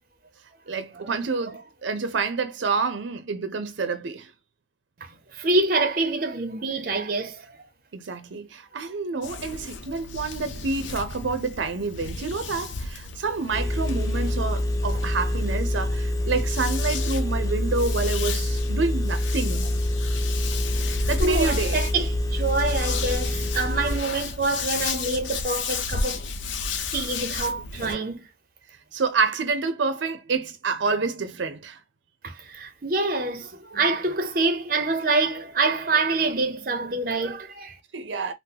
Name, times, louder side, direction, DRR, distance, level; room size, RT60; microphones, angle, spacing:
voice 1, 0.7-4.3 7.9-19.7 21.1-21.9 28.9-31.8 37.9-38.3, right 4 dB, 90° right, 0.6 m, -28 dB
voice 2, 5.3-7.6 21.2-26.2 26.9-28.3 32.2-37.8, right 3 dB, 50° right, 0.7 m, -26 dB
sound 1, 9.2-27.9, left 4 dB, 90° left, 0.6 m, -33 dB
Engine, 13.5-24.0, left 1 dB, 20° left, 0.5 m, -26 dB
3.8 x 2.1 x 2.8 m
head